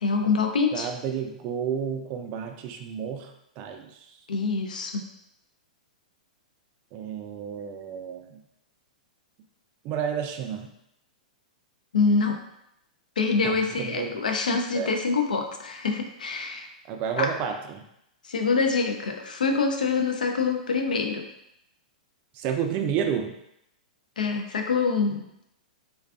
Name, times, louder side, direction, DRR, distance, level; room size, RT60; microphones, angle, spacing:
voice 1, 0.0-0.9 4.3-5.0 11.9-12.4 13.2-16.7 17.2-17.3 18.3-21.3 24.2-25.2, left 4 dB, 85° left, 4 dB, 0.4 m, -25 dB
voice 2, 0.7-4.1 6.9-8.4 9.8-10.7 13.4-14.2 14.7-15.0 16.9-17.8 22.3-23.3, right 8 dB, 40° right, 5 dB, 0.3 m, -31 dB
2.5 x 2.3 x 2.3 m, 0.79 s
hypercardioid pair, 115°, 4 cm